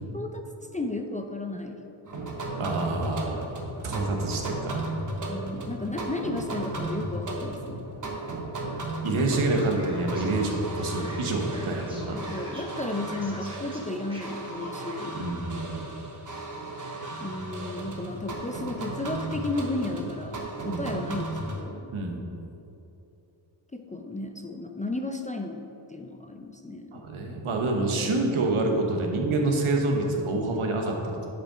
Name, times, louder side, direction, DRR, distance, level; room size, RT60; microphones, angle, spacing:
voice 1, 0.1-0.4 0.7-1.8 5.3-7.8 12.1-15.2 17.2-21.9 23.7-25.6 25.9-27.0, left 2 dB, 15° left, 4 dB, 0.4 m, -34 dB
sound 1, 2.1-21.6, right 2 dB, 40° right, 1.1 m, -35 dB
voice 2, 2.6-3.4 3.8-4.8 9.0-12.2 15.1-15.8 20.7-20.9 21.9-22.2 26.9-31.3, right 2 dB, 85° right, 1 dB, 1.2 m, -27 dB
Male speech man speaking, 9.2-15.0, equal, 10° right, 1.4 m, -45 dB
7.6 x 5.0 x 5.0 m, 2.9 s
wide cardioid pair, 90°, 49 cm